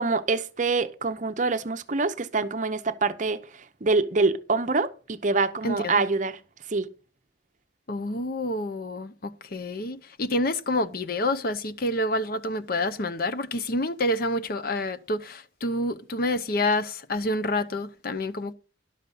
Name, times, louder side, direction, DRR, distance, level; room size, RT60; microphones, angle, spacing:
voice 1, 0.0-6.4 6.7-6.9, right 3 dB, 40° right, 0.7 m, -25 dB
voice 2, 5.6-6.0 7.9-18.5, left 1 dB, 50° left, 0.7 m, -28 dB
11.5 x 6.8 x 5.5 m
head